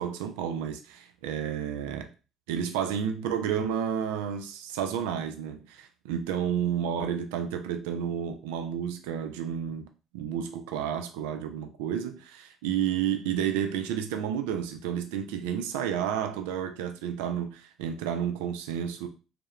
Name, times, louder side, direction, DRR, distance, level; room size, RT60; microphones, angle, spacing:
voice 1, 0.0-2.1 2.5-9.9 10.1-19.1, right 8 dB, 80° right, 0.3 m, -31 dB
2.3 x 2.0 x 2.9 m
hypercardioid pair, 60°, 0 cm